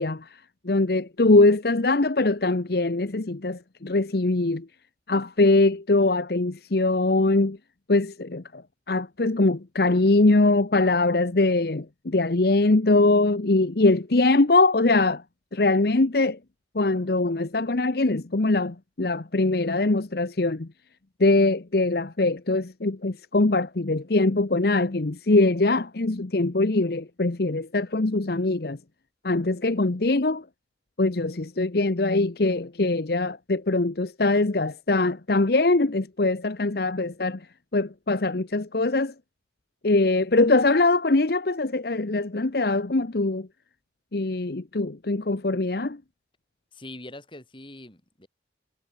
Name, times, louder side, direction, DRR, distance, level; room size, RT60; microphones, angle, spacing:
voice 1, 0.0-4.7 5.1-7.6 7.9-8.6 8.9-15.2 15.5-16.4 16.7-20.7 21.2-28.8 29.2-30.4 31.0-37.5 37.7-39.1 39.8-43.5 44.1-46.0, left 2 dB, 60° left, 0.9 m, -22 dB
voice 2, 46.7-48.3, left 1 dB, 25° left, 5.0 m, -43 dB
head